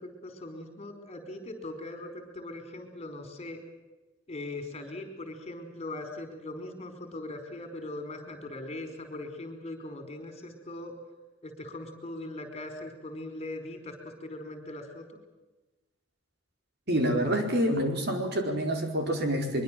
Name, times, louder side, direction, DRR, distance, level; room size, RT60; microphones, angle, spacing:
voice 1, 0.0-3.6 4.3-10.9 11.4-15.2, left 2 dB, 35° left, 7 dB, 4.8 m, -40 dB
voice 2, 16.9-19.6, equal, 60° right, 4 dB, 4.7 m, -27 dB
23.5 x 23.5 x 7.7 m, 1.1 s
head